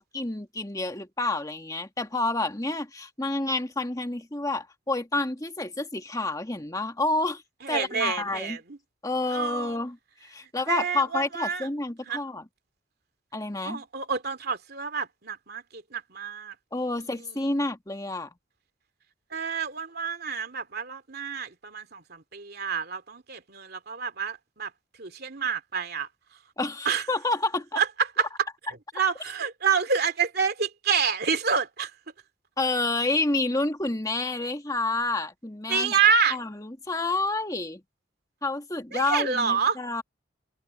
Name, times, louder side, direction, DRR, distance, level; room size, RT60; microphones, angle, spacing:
voice 1, 0.0-7.4 7.7-8.6 9.0-12.5 13.3-13.8 16.7-18.3 26.6-27.8 32.6-35.9 36.3-37.8 38.4-40.0, left 2 dB, 20° left, 1.9 m, -29 dB
voice 2, 7.6-8.8 9.3-9.8 10.7-11.7 12.1-12.2 13.6-16.5 19.3-24.7 25.0-26.1 26.8-27.0 27.8-27.9 28.2-28.3 28.9-31.9 35.7-36.4 38.9-39.8, right 6 dB, 50° right, 2.7 m, -28 dB
open air
head